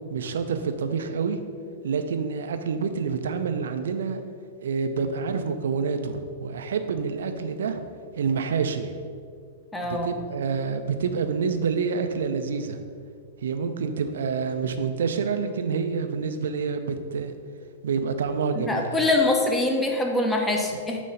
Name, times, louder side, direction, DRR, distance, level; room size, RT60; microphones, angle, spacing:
voice 1, 0.1-1.4 1.8-4.2 4.6-7.8 8.2-9.0 9.8-12.8 13.4-17.3 17.8-19.0, right 5 dB, 65° right, 8 dB, 0.5 m, -27 dB
voice 2, 9.7-10.1 18.6-21.0, left 2 dB, 10° left, 2 dB, 1.0 m, -24 dB
9.0 x 3.1 x 5.4 m, 2.1 s
figure-of-eight pair, 100°, 0 cm